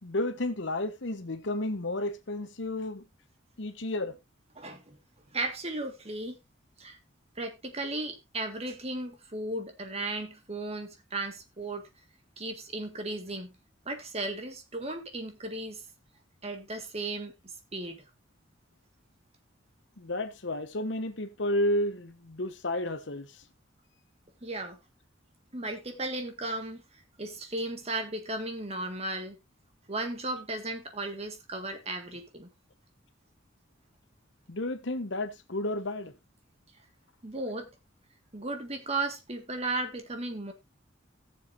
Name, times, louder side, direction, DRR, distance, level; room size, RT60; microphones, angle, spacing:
voice 1, 0.0-3.0 3.6-4.2 20.0-23.4 34.5-36.1, left 1 dB, 65° left, 1.1 m, -32 dB
voice 2, 4.6-5.0 5.3-6.4 6.8-7.0 7.4-11.8 12.4-13.5 13.9-15.8 16.4-17.3 17.7-18.0 24.4-24.8 25.5-26.8 27.2-29.4 29.9-32.5 37.2-37.7 38.3-40.5, right 2 dB, 35° right, 1.8 m, -35 dB
18.0 x 7.2 x 2.6 m
head